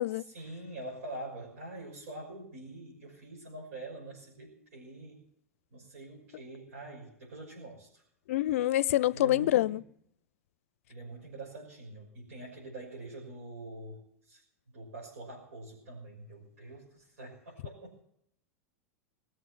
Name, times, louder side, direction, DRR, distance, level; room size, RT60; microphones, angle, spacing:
voice 1, 0.1-5.2 5.7-8.0 8.9-9.8 10.9-14.4 14.7-18.0, right 2 dB, 70° right, 6.4 m, -45 dB
voice 2, 8.3-9.8, left 14 dB, 65° left, 0.5 m, -26 dB
22.0 x 7.8 x 7.8 m
hypercardioid pair, 90°, 8 cm